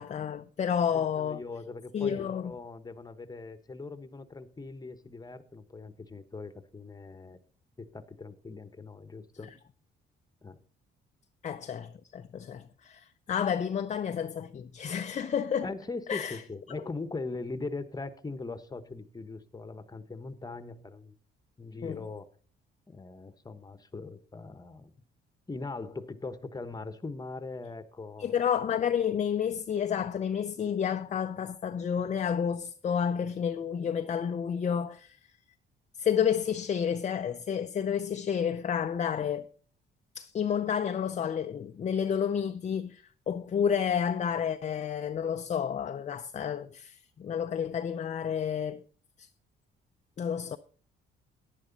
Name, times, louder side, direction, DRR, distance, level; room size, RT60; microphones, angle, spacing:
voice 1, 0.0-1.4 1.9-2.5 11.4-15.7 16.1-16.4 21.8-22.1 28.2-35.2 36.0-39.5 40.2-48.8 49.2-49.3 50.2-50.6, left 8 dB, 35° left, 0.5 m, -30 dB
voice 2, 0.9-7.4 7.8-9.5 10.4-10.6 15.6-21.1 21.6-22.3 22.9-24.9 25.5-28.4, left 3 dB, 20° left, 1.1 m, -40 dB
11.0 x 10.0 x 4.0 m
cardioid pair, 90°, 20 cm